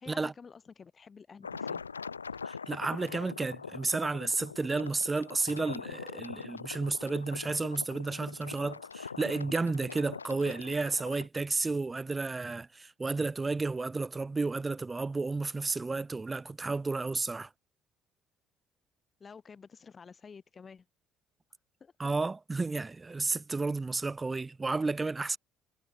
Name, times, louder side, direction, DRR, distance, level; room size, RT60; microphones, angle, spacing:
voice 1, 0.0-1.8 19.2-20.9 21.8-21.9, left 5 dB, 35° left, 2.2 m, -50 dB
sound 1, 1.4-11.3, left 5 dB, 85° left, 1.3 m, -43 dB
voice 2, 2.4-17.5 22.0-25.4, right 3 dB, 20° right, 0.9 m, -32 dB
figure-of-eight pair, 50°, 0 cm